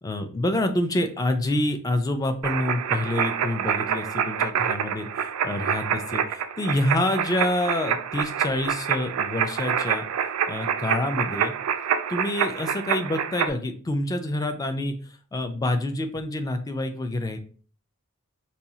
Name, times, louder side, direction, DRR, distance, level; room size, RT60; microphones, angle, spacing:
voice 1, 0.0-10.0 10.5-11.5 12.1-17.4, left 1 dB, 15° left, 7 dB, 0.3 m, -27 dB
sound 1, 2.4-13.5, right 8 dB, 80° right, 0.3 m, -27 dB
4.1 x 2.3 x 2.7 m, 0.41 s
head